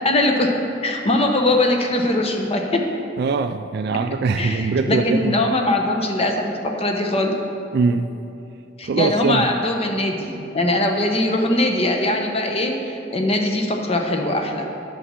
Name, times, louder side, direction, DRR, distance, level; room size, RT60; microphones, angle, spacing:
voice 1, 0.0-0.5 0.8-2.8 4.4-7.4 8.8-14.7, left 1 dB, 35° left, 3 dB, 0.9 m, -21 dB
voice 2, 3.2-5.4 7.7-8.1 8.8-9.4, right 4 dB, 60° right, 8 dB, 0.3 m, -21 dB
8.6 x 6.3 x 6.3 m, 2.7 s
head